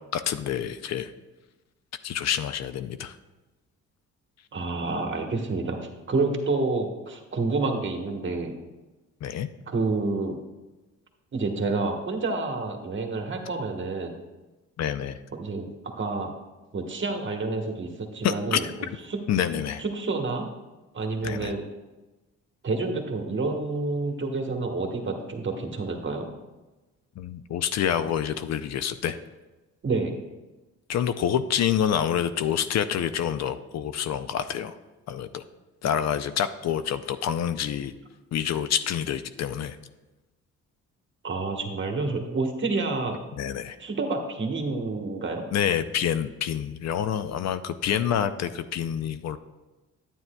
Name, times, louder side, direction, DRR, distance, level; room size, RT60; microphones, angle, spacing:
voice 1, 0.1-1.1 2.0-3.2 9.2-9.5 14.8-15.1 18.2-18.6 19.3-19.8 21.2-21.5 27.2-29.2 30.9-34.7 35.1-35.4 35.8-37.9 38.3-39.8 43.3-43.8 45.5-49.4, left 9 dB, 60° left, 12 dB, 0.5 m, -27 dB
voice 2, 4.5-5.8 6.1-8.6 9.7-10.4 11.3-14.2 15.3-15.7 16.0-16.3 16.7-18.6 19.1-19.2 19.8-20.5 20.9-21.6 22.6-26.3 29.8-30.2 41.2-43.2 43.8-45.4, right 3 dB, 40° right, 3 dB, 1.3 m, -28 dB
9.6 x 8.9 x 2.2 m, 1.1 s
cardioid pair, 90°, 30 cm